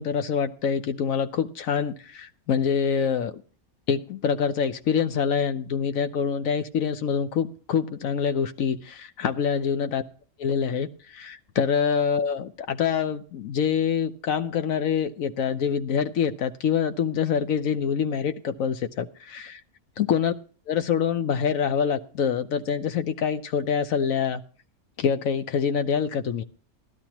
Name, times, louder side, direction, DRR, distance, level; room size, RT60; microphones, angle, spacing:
voice 1, 0.0-3.4 3.9-10.0 10.4-19.6 20.0-20.3 20.7-24.4 25.0-26.4, left 7 dB, 70° left, 10 dB, 1.2 m, -25 dB
16.0 x 12.0 x 2.9 m, 0.40 s
omnidirectional pair, 1.5 m